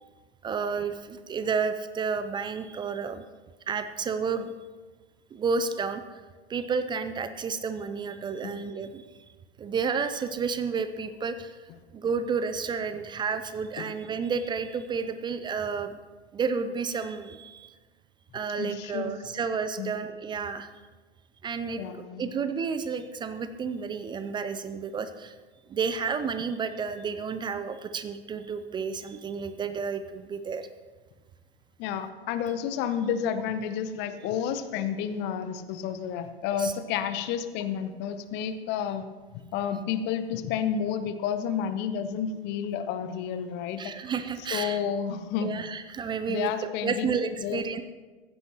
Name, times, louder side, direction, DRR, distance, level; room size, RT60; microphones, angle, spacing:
voice 1, 0.4-3.2 3.7-4.5 5.3-6.0 6.5-9.0 9.6-11.6 11.9-16.0 16.3-17.8 18.3-20.8 21.4-21.8 22.2-25.3 25.7-30.7 36.6-36.7 43.8-44.8 45.4-46.5 46.8-47.8, right 5 dB, 15° right, 10 dB, 0.5 m, -31 dB
voice 2, 18.6-19.1 19.8-19.9 21.8-22.3 31.8-39.1 39.5-43.9 44.5-45.7 46.3-47.1 47.4-47.6, left 8 dB, 35° left, 11 dB, 0.9 m, -30 dB
16.0 x 15.0 x 3.0 m, 1.3 s
figure-of-eight pair, 100°, 31 cm